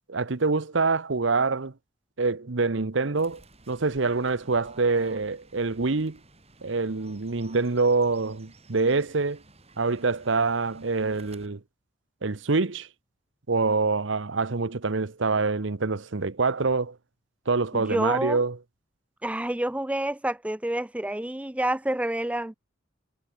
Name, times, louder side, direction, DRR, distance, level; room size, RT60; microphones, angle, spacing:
voice 1, 0.1-1.7 2.2-3.4 3.7-6.2 6.6-9.4 9.8-11.6 12.2-12.9 13.5-17.0 17.5-18.6, right 3 dB, 75° right, 1.0 m, -25 dB
Fowl / Bird, 3.2-11.5, right 3 dB, 35° right, 7.9 m, -54 dB
voice 2, 17.7-18.4 19.2-22.5, right 1 dB, 5° right, 0.6 m, -28 dB
head